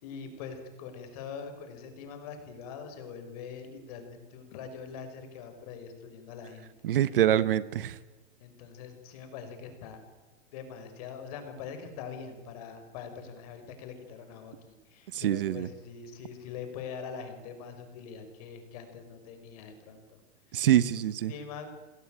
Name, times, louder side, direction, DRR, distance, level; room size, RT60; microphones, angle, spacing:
voice 1, 0.0-6.7 8.4-10.0 10.5-14.5 14.9-20.2 20.5-20.7 20.9-21.0 21.3-21.8, left 6 dB, 35° left, 7 dB, 5.3 m, -43 dB
voice 2, 6.8-8.0 15.1-15.7 20.5-21.3, right 11 dB, 55° right, 16 dB, 1.2 m, -25 dB
29.5 x 21.0 x 9.0 m, 1.2 s
supercardioid pair, 180°, 33 cm